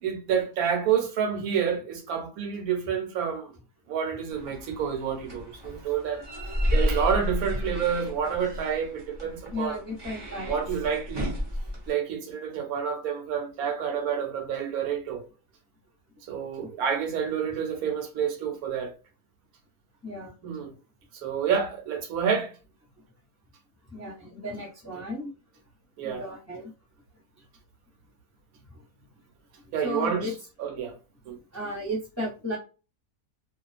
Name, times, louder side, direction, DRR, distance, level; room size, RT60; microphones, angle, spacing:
voice 1, 0.0-3.5 3.9-6.2 6.7-9.8 10.5-11.3 11.9-15.2 16.3-18.9 20.4-20.7 21.2-22.5 26.0-26.2 29.7-30.3 30.6-30.9 31.3-31.4, right 7 dB, 80° right, 1.1 m, -28 dB
sound 1, 4.3-11.9, equal, 30° right, 0.5 m, -32 dB
voice 2, 9.5-10.5 16.6-16.7 20.0-20.3 23.9-25.3 26.0-26.7 29.8-30.3 31.5-32.6, left 1 dB, 15° left, 0.7 m, -34 dB
2.3 x 2.3 x 2.4 m
omnidirectional pair, 1.5 m